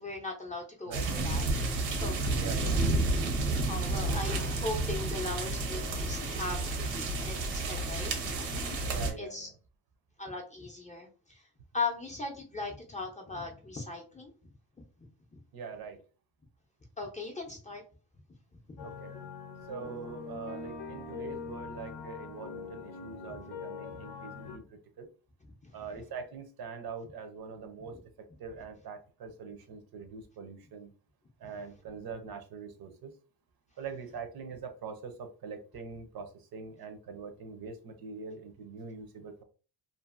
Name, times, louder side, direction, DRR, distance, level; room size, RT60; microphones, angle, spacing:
voice 1, 0.0-1.4 2.0-2.4 2.7-2.8 3.7-8.5 9.2-9.5 10.2-11.4 11.7-14.4 17.0-17.8 18.7-18.9 25.6-25.7 27.9-28.0, left 3 dB, 15° left, 1 dB, 0.5 m, -38 dB
sound 1, 0.9-9.1, right 2 dB, 90° right, 0.9 m, -31 dB
voice 2, 2.3-2.9 8.8-9.5 15.5-16.0 18.8-19.1 19.7-25.1 25.7-28.0 28.4-30.9 31.4-33.1 33.8-39.4, right 5 dB, 60° right, 7 dB, 0.6 m, -43 dB
sound 2, 18.8-24.6, left 5 dB, 85° left, 0.7 m, -43 dB
2.6 x 2.5 x 2.4 m, 0.36 s
cardioid pair, 130°, 42 cm